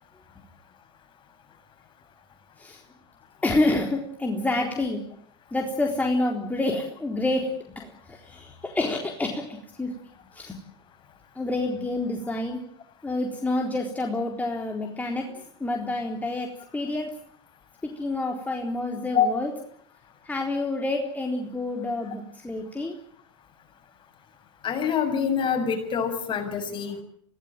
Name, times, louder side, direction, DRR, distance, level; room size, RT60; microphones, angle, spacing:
voice 1, 3.4-5.0 5.5-9.9 10.3-10.6 11.4-12.6 13.0-16.5 16.7-17.1 17.8-19.5 20.3-22.9, left 2 dB, 10° left, 1 dB, 3.9 m, -28 dB
voice 2, 24.6-27.0, left 7 dB, 35° left, 5 dB, 7.3 m, -25 dB
24.5 x 17.5 x 9.1 m, 0.63 s
hypercardioid pair, 95°, 14 cm